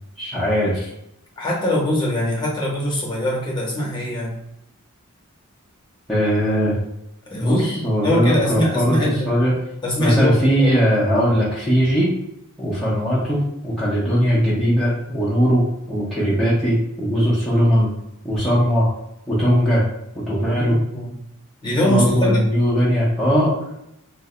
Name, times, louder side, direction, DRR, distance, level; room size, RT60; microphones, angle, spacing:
voice 1, 0.2-0.9 6.1-6.8 7.3-9.0 9.3-9.5 10.0-12.1 12.6-17.9 18.2-18.9 19.3-19.8 20.1-20.8 21.7-23.5, equal, ahead, -9 dB, 0.7 m, -19 dB
voice 2, 1.4-4.3 7.3-9.3 9.8-10.8 20.7-21.2 21.6-22.4, left 1 dB, 20° left, -3 dB, 0.9 m, -23 dB
2.6 x 2.1 x 3.8 m, 0.83 s
head